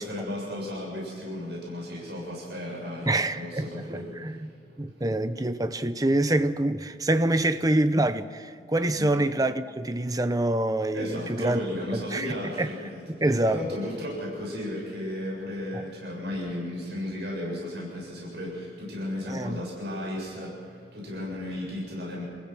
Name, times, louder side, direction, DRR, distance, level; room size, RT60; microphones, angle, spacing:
voice 1, 0.0-5.0 9.0-9.1 10.9-13.0 13.5-22.2, left 1 dB, 70° right, 7.3 m, -34 dB
voice 2, 3.1-4.5 4.8-11.6 11.9-12.7 13.2-13.6 15.7-15.8 19.3-19.6, right 1 dB, 20° right, 0.7 m, -26 dB
28.5 x 15.5 x 6.2 m
head